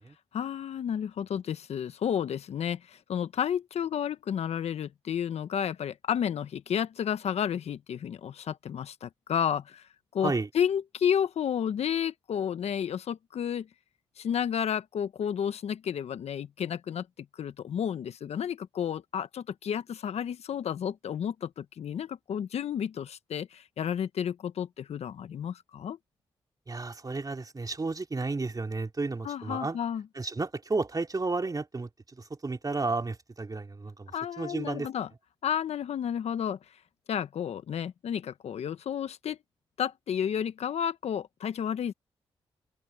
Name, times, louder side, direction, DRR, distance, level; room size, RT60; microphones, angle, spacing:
voice 1, 0.3-9.9 10.1-13.7 14.2-17.1 17.4-26.0 29.2-30.0 34.1-35.1 35.4-36.6 37.1-39.4 39.8-41.9, left 8 dB, 75° left, 1.1 m, -31 dB
voice 2, 26.7-29.8 30.2-34.9, right 3 dB, 35° right, 3.5 m, -32 dB
open air
supercardioid pair, 50°, 11 cm